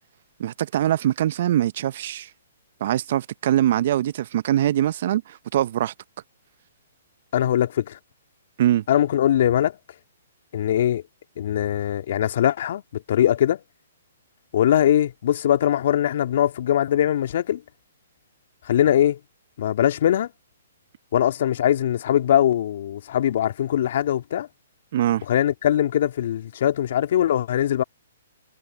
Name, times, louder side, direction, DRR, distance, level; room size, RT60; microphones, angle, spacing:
voice 1, 0.4-2.3 2.8-5.9 8.6-8.8 24.9-25.2, right 12 dB, 55° right, 0.6 m, -22 dB
voice 2, 7.3-8.0 8.9-9.7 10.5-11.0 11.4-13.6 14.5-17.6 18.7-19.2 19.6-20.3 21.1-24.5 25.3-27.8, left 11 dB, 55° left, 2.8 m, -21 dB
hypercardioid pair, 130°, 0 cm